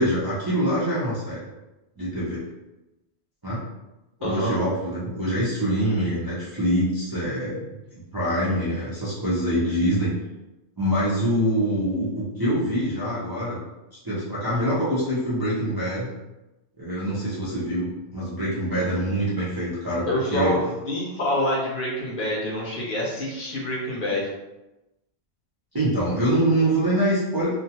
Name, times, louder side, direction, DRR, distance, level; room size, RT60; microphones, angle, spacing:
voice 1, 0.0-1.4 2.0-2.4 3.4-3.6 4.2-7.6 8.1-10.1 10.8-13.6 14.0-16.1 16.8-20.5 25.7-27.6, right 1 dB, 25° right, -10 dB, 0.5 m, -24 dB
voice 2, 4.2-4.6 20.1-24.3, left 1 dB, 55° left, -4 dB, 0.7 m, -26 dB
2.4 x 2.1 x 2.8 m, 1.0 s
omnidirectional pair, 1.1 m